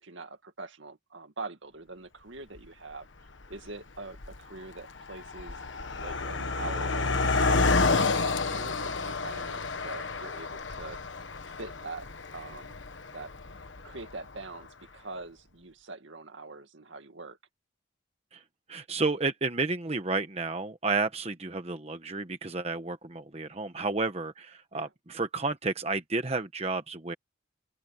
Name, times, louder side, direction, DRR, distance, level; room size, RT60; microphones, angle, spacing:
voice 1, 0.0-3.1 3.5-5.6 6.0-11.0 11.6-12.1 12.3-12.8 13.0-13.6 13.8-14.7 14.9-17.4 24.7-24.9, right 3 dB, 70° right, 2.1 m, -43 dB
Car passing by, 2.6-2.7 3.4-3.7 4.0-14.4, left 3 dB, 70° left, 1.3 m, -30 dB
voice 2, 18.7-27.1, right 3 dB, 30° right, 1.1 m, -31 dB
open air
head